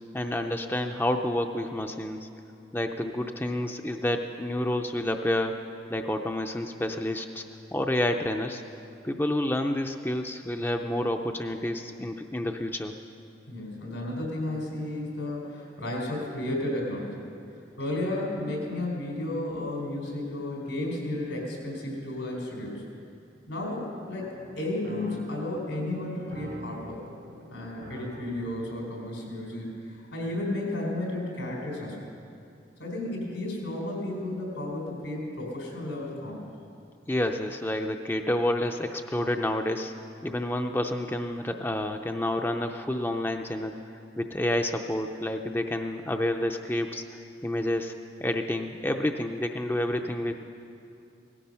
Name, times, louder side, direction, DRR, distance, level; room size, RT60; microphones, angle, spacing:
voice 1, 0.1-2.3 2.7-5.6 5.9-7.4 7.7-8.6 9.0-12.9 37.1-39.9 40.2-43.8 44.2-47.9 48.2-50.3, left 1 dB, 10° left, 4 dB, 0.5 m, -29 dB
voice 2, 13.5-17.3 17.8-22.8 23.5-27.1 27.4-32.0 32.8-36.5, left 1 dB, 90° left, -1 dB, 4.4 m, -33 dB
sound 1, 24.2-29.8, equal, 80° right, 1.4 m, -46 dB
17.5 x 14.5 x 5.6 m, 2.6 s
head